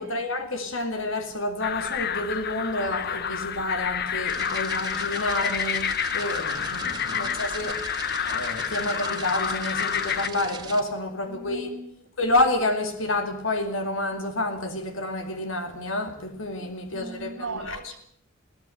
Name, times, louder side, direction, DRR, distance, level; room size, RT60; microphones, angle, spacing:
voice 1, 0.0-7.8 8.3-11.7 12.2-17.8, left 2 dB, 70° left, 2.3 m, -29 dB
sound 1, 1.6-10.3, left 8 dB, 50° left, 1.1 m, -29 dB
sound 2, 4.3-10.8, right 5 dB, 20° right, 2.0 m, -40 dB
voice 2, 7.1-7.4 11.3-12.1 16.8-18.0, right 3 dB, 85° right, 2.7 m, -39 dB
22.0 x 17.0 x 7.9 m
head